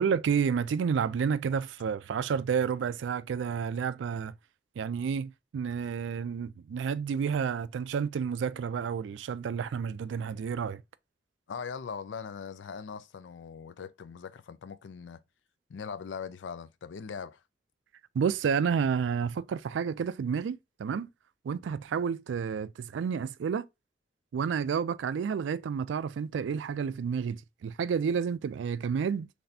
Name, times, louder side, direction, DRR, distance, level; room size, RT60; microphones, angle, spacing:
voice 1, 0.0-4.3 4.8-10.8 18.1-21.1 21.4-23.7 24.3-29.3, right 6 dB, 85° right, 0.3 m, -30 dB
voice 2, 11.5-15.2 15.7-17.4, left 6 dB, 85° left, 0.4 m, -40 dB
4.1 x 3.3 x 2.6 m
head